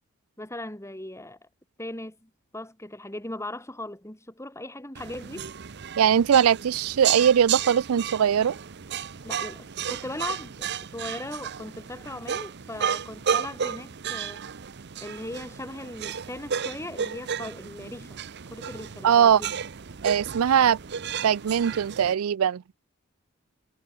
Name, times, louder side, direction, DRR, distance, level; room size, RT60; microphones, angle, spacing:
voice 1, 0.4-1.5 1.8-5.5 9.2-14.4 15.0-18.2 18.5-19.5, left 1 dB, 15° left, 3.0 m, -38 dB
sound 1, 4.9-22.1, right 8 dB, 55° right, 0.7 m, -33 dB
voice 2, 6.0-8.6 19.0-19.4 20.0-20.8 21.2-22.8, right 8 dB, 90° right, 0.4 m, -21 dB
head